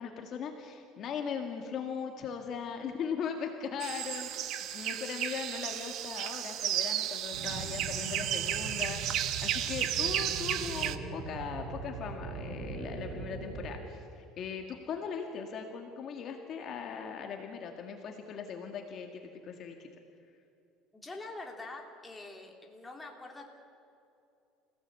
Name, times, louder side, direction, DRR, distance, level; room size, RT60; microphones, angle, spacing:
voice 1, 0.0-19.9, left 6 dB, 40° left, 4 dB, 1.9 m, -39 dB
sound 1, 3.8-11.0, right 11 dB, 50° right, 1.2 m, -33 dB
sound 2, 7.3-13.8, right 4 dB, 70° right, 6.4 m, -41 dB
voice 2, 20.9-23.5, left 2 dB, 10° left, 1 dB, 2.8 m, -45 dB
27.5 x 17.0 x 8.2 m, 2.6 s
cardioid pair, 150°, 0 cm